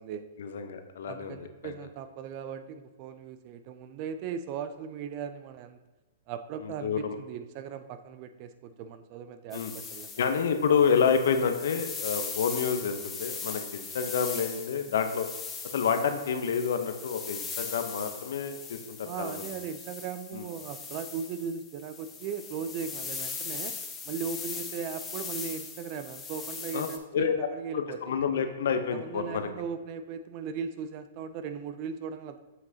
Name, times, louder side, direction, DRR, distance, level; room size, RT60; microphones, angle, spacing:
voice 1, 0.4-1.7 6.6-7.1 9.5-9.7 10.2-15.3 15.7-19.4 20.3-20.4 26.7-26.9 27.1-27.3 27.7-29.5, left 6 dB, 65° left, 7 dB, 0.8 m, -28 dB
voice 2, 1.1-5.8 6.3-10.4 19.0-23.8 24.0-28.0 28.9-32.4, right 6 dB, 40° right, 9 dB, 0.4 m, -38 dB
sound 1, 9.5-27.0, left 5 dB, 15° left, 0.8 m, -40 dB
7.5 x 6.0 x 2.8 m, 1.2 s
hypercardioid pair, 120°, 0 cm